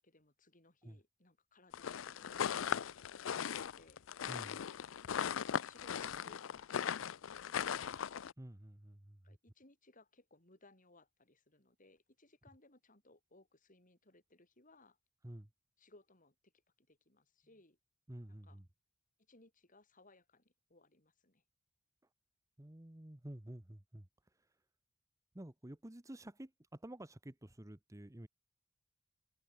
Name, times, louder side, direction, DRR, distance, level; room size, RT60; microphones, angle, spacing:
voice 1, 0.0-4.1 9.2-15.0 15.8-16.5 16.8-17.8 18.3-18.6 19.3-21.4, left 2 dB, 45° left, 7.2 m, -66 dB
sound 1, 1.7-8.3, left 8 dB, 80° left, 0.5 m, -39 dB
voice 2, 4.3-4.6 8.4-9.4 15.2-15.5 18.1-18.6 22.6-24.1 24.4-24.5 25.3-28.3, right 1 dB, 15° right, 1.0 m, -51 dB
head